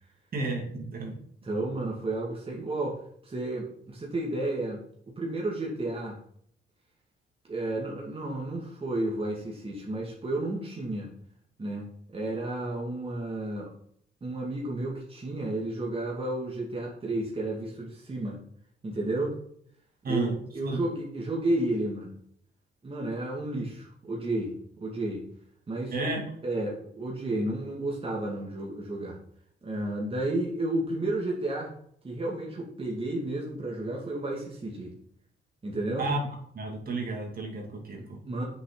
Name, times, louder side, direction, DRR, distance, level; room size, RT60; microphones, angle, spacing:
voice 1, 0.3-1.1 20.0-20.3 20.6-20.8 25.9-26.2 36.0-36.2 36.5-38.2, right 3 dB, 50° right, 1 dB, 2.7 m, -32 dB
voice 2, 1.4-6.2 7.5-11.1 11.6-13.7 14.2-18.4 18.8-19.4 20.1-22.1 22.8-24.5 24.8-25.2 25.7-26.1 26.4-29.2 29.6-31.7 32.0-34.9 35.6-36.1 37.9-38.5, right 2 dB, 30° right, -2 dB, 2.2 m, -32 dB
7.6 x 6.3 x 3.9 m, 0.66 s
cardioid pair, 90°, 20 cm